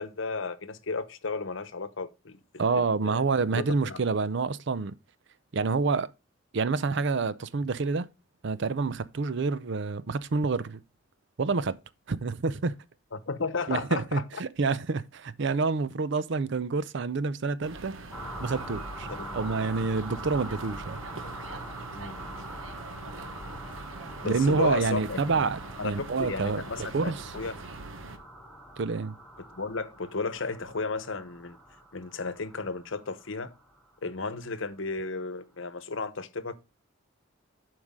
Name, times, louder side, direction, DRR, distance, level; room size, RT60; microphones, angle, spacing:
voice 1, 0.0-3.2 3.5-4.0 13.1-14.2 19.1-19.4 21.9-22.2 24.2-25.5 25.8-27.5 29.5-31.6 31.9-33.5 34.0-36.5, left 4 dB, 70° left, 0.9 m, -34 dB
voice 2, 2.6-4.9 5.5-6.1 6.5-8.1 8.4-10.8 11.4-11.8 12.1-12.8 13.7-17.9 18.4-19.1 19.3-21.0 24.2-26.6 26.9-27.3 28.8-29.2, right 4 dB, 60° right, 0.5 m, -28 dB
sound 1, 17.6-28.2, right 3 dB, 80° right, 1.1 m, -43 dB
sound 2, 18.1-34.4, right 1 dB, ahead, 2.9 m, -44 dB
11.5 x 4.8 x 3.6 m
head